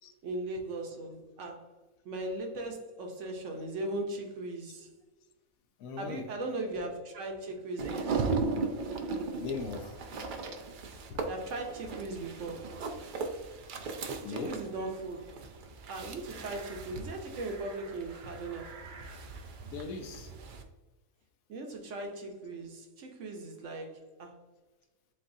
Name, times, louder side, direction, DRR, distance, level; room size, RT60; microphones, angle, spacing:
voice 1, 0.2-1.6 2.0-4.9 6.0-8.3 11.3-12.7 14.3-15.2 15.9-18.8 21.5-24.4, right 2 dB, 65° right, 2 dB, 1.1 m, -38 dB
voice 2, 5.8-6.3 9.3-10.0 11.1-11.3 14.2-14.6 19.6-20.3, left 4 dB, 80° left, 6 dB, 1.1 m, -39 dB
sound 1, 7.8-20.6, right 4 dB, 80° right, 0.4 m, -38 dB
7.2 x 2.5 x 2.6 m, 1.2 s
omnidirectional pair, 1.4 m